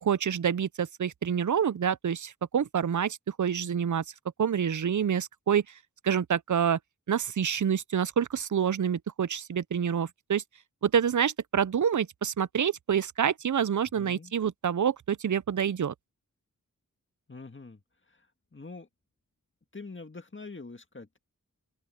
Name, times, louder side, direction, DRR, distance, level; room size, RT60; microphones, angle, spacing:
voice 1, 0.0-4.0 4.4-5.6 6.0-6.8 7.1-10.4 10.8-15.9, right 8 dB, 60° right, 0.5 m, -27 dB
voice 2, 14.0-14.3 17.3-17.8 18.1-18.2 18.5-18.9 19.7-21.2, left 3 dB, 35° left, 1.8 m, -44 dB
open air
wide cardioid pair, 70°, 34 cm